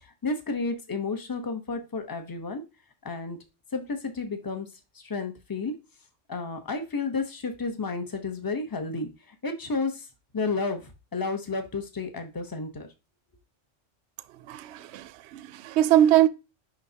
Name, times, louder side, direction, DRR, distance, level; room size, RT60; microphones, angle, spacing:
voice 1, 0.0-2.6 3.0-3.4 3.7-4.7 4.9-5.7 6.3-10.1 10.3-12.9, left 3 dB, 20° left, 1.0 m, -31 dB
voice 2, 14.5-16.3, right 12 dB, 70° right, 0.8 m, -22 dB
10.0 x 3.8 x 2.8 m
omnidirectional pair, 1.3 m